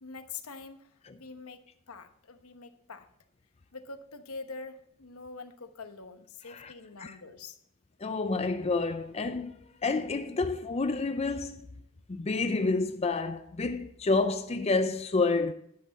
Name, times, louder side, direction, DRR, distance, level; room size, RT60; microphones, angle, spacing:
voice 1, 0.0-3.1 3.7-7.6, left 4 dB, 80° left, 1.0 m, -45 dB
voice 2, 8.0-11.7 12.1-15.5, left 3 dB, 30° left, 0.4 m, -29 dB
10.5 x 7.8 x 4.1 m
head